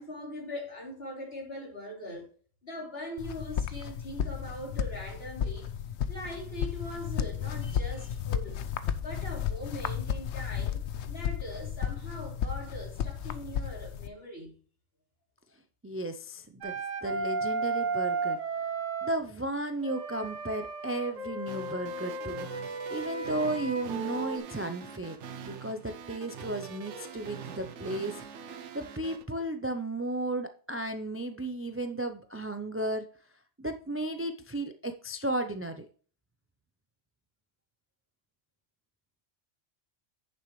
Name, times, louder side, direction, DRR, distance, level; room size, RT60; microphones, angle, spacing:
voice 1, 0.0-2.3 2.6-5.7 6.1-8.6 9.0-10.8 11.1-14.6, left 1 dB, 55° left, 3.4 m, -41 dB
sound 1, 3.2-14.1, left 8 dB, 70° left, 0.9 m, -33 dB
voice 2, 15.8-16.7 17.0-18.4 19.0-25.2 25.5-33.0 33.6-35.9, right 1 dB, 20° right, 0.4 m, -34 dB
Wind instrument woodwind instrument, 16.6-19.2 19.8-24.4, right 3 dB, 90° right, 1.9 m, -34 dB
sound 2, 21.5-29.2, right 6 dB, 75° right, 1.1 m, -44 dB
9.5 x 6.9 x 3.1 m
omnidirectional pair, 1.2 m